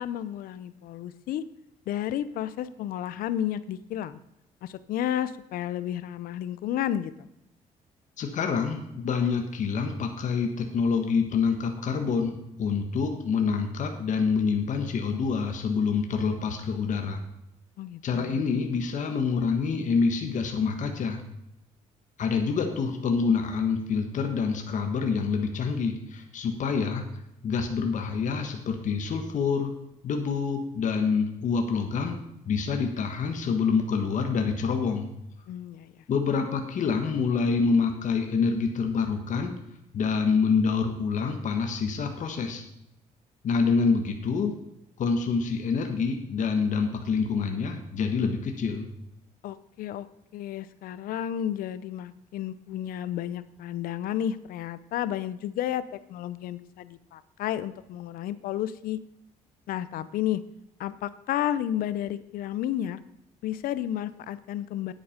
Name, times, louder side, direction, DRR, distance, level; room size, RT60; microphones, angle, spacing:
voice 1, 0.0-1.4 1.9-4.2 4.6-7.1 17.8-18.4 35.5-35.9 49.4-50.1 50.3-55.8 56.1-59.0 59.7-60.4 60.8-63.0 63.4-64.9, left 11 dB, 85° left, 15 dB, 0.7 m, -32 dB
voice 2, 8.2-17.2 18.0-21.2 22.2-27.0 27.4-29.7 30.0-32.2 32.5-35.1 36.1-39.5 39.9-42.6 43.4-44.5 45.0-48.9, left 5 dB, 60° left, 4 dB, 1.4 m, -26 dB
9.9 x 8.4 x 5.2 m, 0.84 s
cardioid pair, 95°, 15 cm